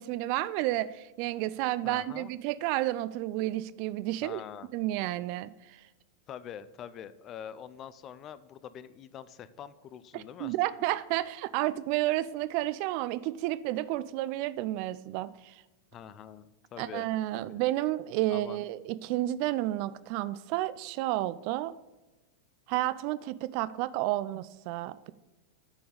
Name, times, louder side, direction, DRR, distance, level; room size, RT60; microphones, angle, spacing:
voice 1, 0.0-4.4 4.7-5.8 10.1-15.6 16.8-21.8 22.7-25.1, right 16 dB, 45° right, 16 dB, 0.3 m, -31 dB
voice 2, 1.8-2.3 4.2-4.7 6.3-10.6 15.9-17.1 17.3-17.6 18.3-18.6, left 9 dB, 30° left, 16 dB, 0.4 m, -44 dB
10.0 x 4.6 x 4.9 m, 1.1 s
figure-of-eight pair, 90°, 0 cm